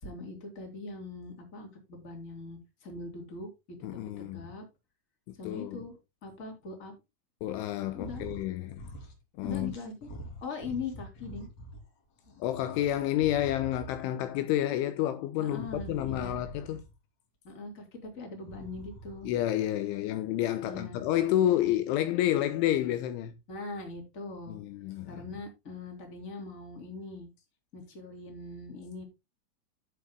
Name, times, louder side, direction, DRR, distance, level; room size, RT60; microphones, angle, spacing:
voice 1, 0.0-4.6 5.4-5.9 6.2-6.9 7.9-8.3 9.4-10.1 10.4-11.5 15.4-16.4 17.4-19.3 20.6-21.0 23.5-24.6 25.1-27.3 27.7-29.0, left 3 dB, 20° left, 3.1 m, -41 dB
voice 2, 3.8-4.4 5.4-5.8 7.4-8.8 9.4-9.7 12.4-16.8 19.3-23.3 24.5-25.2, left 12 dB, 80° left, 3.0 m, -29 dB
sound 1, 7.9-8.5 8.7-9.2 9.4-11.8 12.2-14.2 15.5-16.9 18.4-19.4, equal, 40° left, 3.6 m, -45 dB
14.0 x 7.6 x 2.3 m
omnidirectional pair, 5.9 m